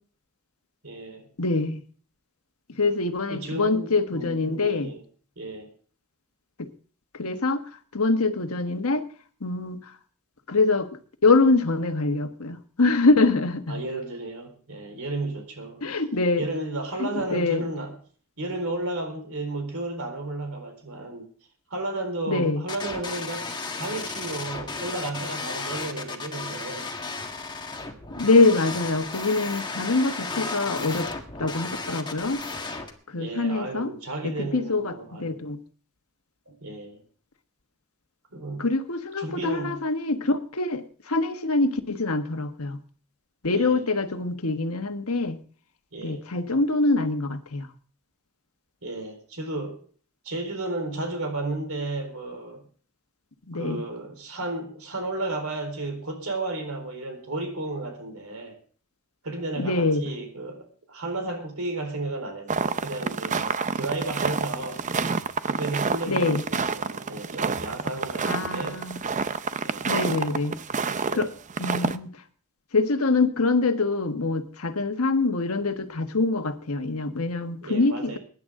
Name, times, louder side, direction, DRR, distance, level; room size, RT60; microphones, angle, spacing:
voice 1, 0.8-1.3 3.3-5.0 5.4-5.7 13.7-15.8 16.4-17.9 18.4-21.3 21.7-23.5 23.8-26.9 33.1-35.4 36.5-37.0 38.3-38.7 39.2-39.8 43.5-43.8 45.9-46.2 48.8-49.8 50.2-52.6 53.5-58.6 59.2-64.8 65.5-68.8 69.6-70.5 71.0-71.3 77.6-78.2, right 2 dB, 70° right, 4.1 m, -33 dB
voice 2, 1.4-1.8 2.7-4.9 6.6-6.7 7.1-7.6 7.9-9.0 9.4-9.9 10.5-13.8 15.8-16.4 17.0-17.6 22.3-22.6 28.2-31.1 31.4-32.4 33.1-33.9 34.2-35.6 38.6-42.8 43.4-45.4 46.0-47.7 53.5-53.8 59.6-60.0 66.1-66.4 68.2-69.0 69.8-70.6 71.1-71.3 71.6-72.2 72.7-78.2, left 3 dB, 70° left, 1.4 m, -24 dB
sound 1, 22.7-32.9, left 3 dB, 20° left, 1.7 m, -34 dB
sound 2, 62.5-71.2 71.5-72.0, right 5 dB, 35° right, 0.6 m, -28 dB
23.0 x 10.5 x 3.7 m
head